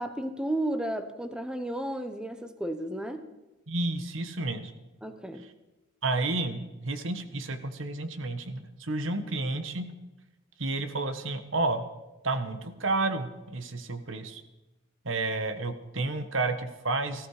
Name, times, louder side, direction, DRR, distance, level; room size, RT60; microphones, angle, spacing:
voice 1, 0.0-3.3 5.0-5.5, right 1 dB, 5° right, 8 dB, 1.0 m, -33 dB
voice 2, 3.7-4.7 6.0-9.9 10.6-11.9 12.2-14.4 15.0-17.3, right 2 dB, 65° right, 9 dB, 1.5 m, -31 dB
19.0 x 15.0 x 5.1 m, 1.0 s
head